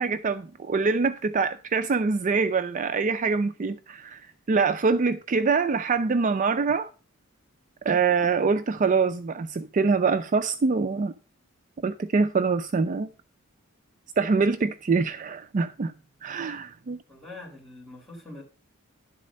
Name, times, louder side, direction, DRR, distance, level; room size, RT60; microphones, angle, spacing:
voice 1, 0.0-6.9 7.8-11.1 11.8-13.1 14.2-15.9 16.2-17.0, right 4 dB, 40° right, 0.4 m, -24 dB
voice 2, 17.1-18.4, left 2 dB, ahead, 4.1 m, -43 dB
11.0 x 4.1 x 6.2 m
head